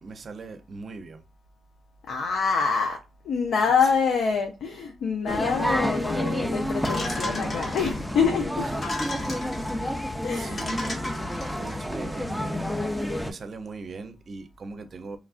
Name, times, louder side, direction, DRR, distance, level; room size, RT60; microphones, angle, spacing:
voice 1, 0.0-1.3 3.8-3.9 8.6-8.8 9.8-10.9 11.4-12.8 13.2-15.2, right 3 dB, 55° right, 0.5 m, -40 dB
voice 2, 2.1-3.0 3.2-8.6 10.2-10.6, left 5 dB, 85° left, 0.5 m, -26 dB
sound 1, 5.3-13.3, left 1 dB, 5° left, 0.6 m, -29 dB
sound 2, 6.8-8.1 8.7-9.7 10.2-10.3 10.6-11.8, left 2 dB, 45° left, 1.0 m, -34 dB
3.1 x 2.4 x 2.4 m
cardioid pair, 60°, 0 cm